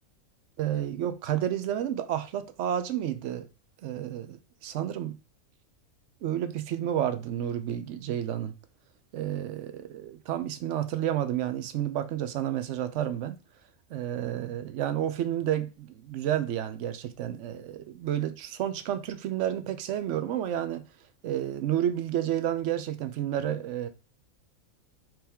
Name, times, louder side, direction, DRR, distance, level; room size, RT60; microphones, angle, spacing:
voice 1, 0.6-3.5 3.8-5.2 6.2-8.5 9.1-13.4 13.9-20.8 21.2-23.9, right 11 dB, 70° right, 0.8 m, -30 dB
4.8 x 3.0 x 3.5 m
omnidirectional pair, 1.4 m